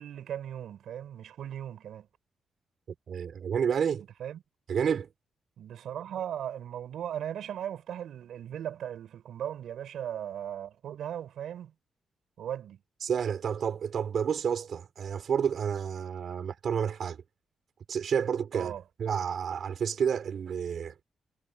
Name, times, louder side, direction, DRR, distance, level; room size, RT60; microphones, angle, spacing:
voice 1, 0.0-2.1 4.2-4.4 5.6-11.7 12.4-12.8 18.5-18.8, right 10 dB, 85° right, 7.9 m, -37 dB
voice 2, 3.1-4.0 4.7-5.1 13.0-17.2 17.9-18.7 19.0-20.9, right 7 dB, 60° right, 6.7 m, -30 dB
cardioid pair, 105°, 0 cm